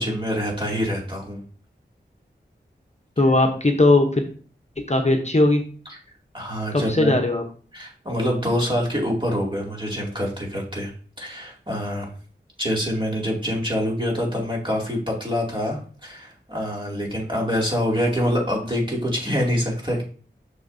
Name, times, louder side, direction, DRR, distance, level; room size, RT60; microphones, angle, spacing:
voice 1, 0.0-1.4 6.3-7.1 7.7-10.9 11.2-12.1 12.6-20.0, equal, 25° right, -3 dB, 2.5 m, -25 dB
voice 2, 3.2-4.2 4.8-5.6 6.9-7.4, left 2 dB, 35° left, 3 dB, 0.9 m, -18 dB
6.3 x 6.3 x 2.7 m, 0.42 s
wide cardioid pair, 40°, 19 cm